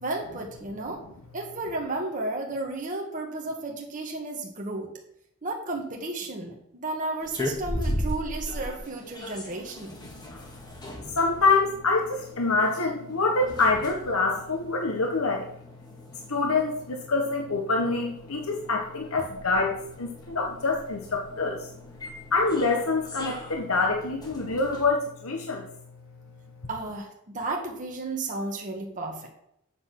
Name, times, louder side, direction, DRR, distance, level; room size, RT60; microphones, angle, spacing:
voice 1, 0.0-1.0 1.3-4.9 5.4-9.9 26.7-29.3, right 2 dB, 40° right, 0 dB, 1.6 m, -33 dB
sound 1, 7.2-24.9, equal, 20° left, 1.6 m, -39 dB
voice 2, 11.1-15.5 16.3-21.7 22.3-25.7, left 3 dB, 75° left, 2 dB, 1.3 m, -26 dB
8.1 x 6.6 x 6.0 m, 0.73 s
head